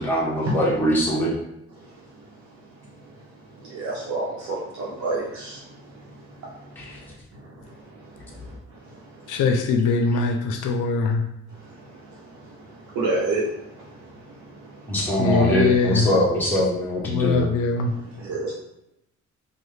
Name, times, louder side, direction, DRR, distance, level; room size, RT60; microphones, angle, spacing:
voice 1, 0.0-1.3 6.8-7.0 14.9-17.4, equal, 5° left, -5 dB, 0.9 m, -22 dB
voice 2, 3.8-4.3 5.0-5.2 13.0-13.4 18.3-18.5, right 3 dB, 70° right, -6 dB, 0.9 m, -25 dB
voice 3, 9.3-11.2 15.2-16.1 17.0-17.9, left 4 dB, 80° left, 4 dB, 0.5 m, -22 dB
3.2 x 2.3 x 3.1 m, 0.85 s
cardioid pair, 90°, 30 cm